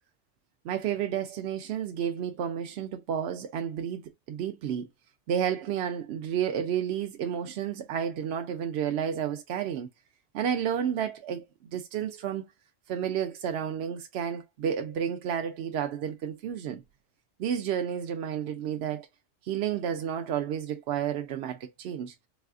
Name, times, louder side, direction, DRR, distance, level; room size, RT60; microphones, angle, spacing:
voice 1, 0.6-4.9 5.3-9.9 10.3-11.4 11.7-12.5 12.9-16.8 17.4-19.1 19.5-22.1, right 9 dB, 65° right, 0.7 m, -31 dB
4.1 x 2.2 x 2.4 m
omnidirectional pair, 1.3 m